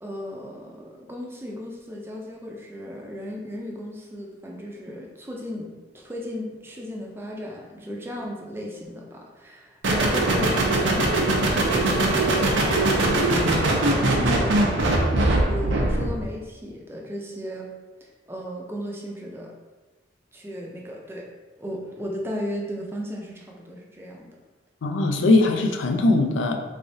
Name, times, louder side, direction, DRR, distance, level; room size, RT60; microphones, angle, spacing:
voice 1, 0.0-11.2 11.8-14.6 15.4-17.7 18.0-19.5 20.3-21.3 21.6-24.3, equal, 15° right, -1 dB, 0.4 m, -35 dB
sound 1, 9.8-16.2, right 2 dB, 85° right, 0.6 m, -21 dB
voice 2, 24.8-26.6, left 2 dB, 90° left, 4 dB, 0.4 m, -20 dB
3.5 x 3.3 x 2.6 m, 1.2 s
head